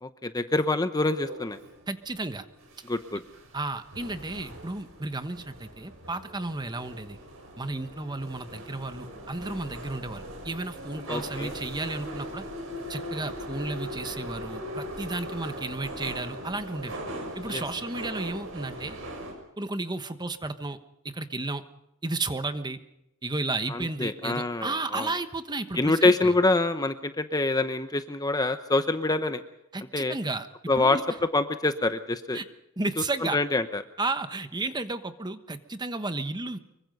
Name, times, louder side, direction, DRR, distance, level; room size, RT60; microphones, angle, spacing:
voice 1, 0.0-1.6 2.8-3.2 11.1-11.5 17.5-17.6 23.7-25.1 25.8-29.4 29.9-30.2 30.7-31.0 31.3-32.4 33.2-33.8, left 2 dB, 20° left, 10 dB, 0.9 m, -25 dB
sound 1, 1.2-19.3, equal, 70° right, 6.4 m, -40 dB
voice 2, 1.9-2.4 3.5-7.2 7.6-12.4 12.9-17.0 17.3-19.0 19.6-20.8 21.0-21.6 22.0-22.8 23.2-26.3 29.7-30.5 30.8-31.0 32.3-32.4 32.8-33.4 34.0-36.6, right 2 dB, 20° right, 10 dB, 1.2 m, -33 dB
25.0 x 23.5 x 5.4 m, 0.82 s
head